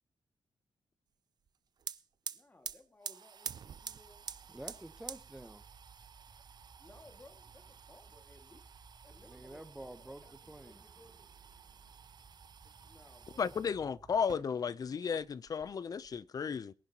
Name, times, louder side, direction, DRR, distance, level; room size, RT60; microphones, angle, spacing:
sound 1, 1.5-1.6 1.8-13.7 14.2-14.9 15.2-16.2, right 7 dB, 50° right, 0.6 m, -49 dB
voice 1, 2.3-4.3 6.8-8.6 9.0-11.3 12.8-13.4, left 2 dB, 20° left, 2.1 m, -60 dB
sound 2, 3.6-14.2, right 4 dB, 30° right, 2.8 m, -60 dB
voice 2, 4.5-5.6 9.2-10.8, right 1 dB, 10° right, 1.0 m, -49 dB
voice 3, 13.4-16.7, left 6 dB, 40° left, 0.6 m, -34 dB
22.5 x 11.0 x 3.0 m
wide cardioid pair, 130°, 9 cm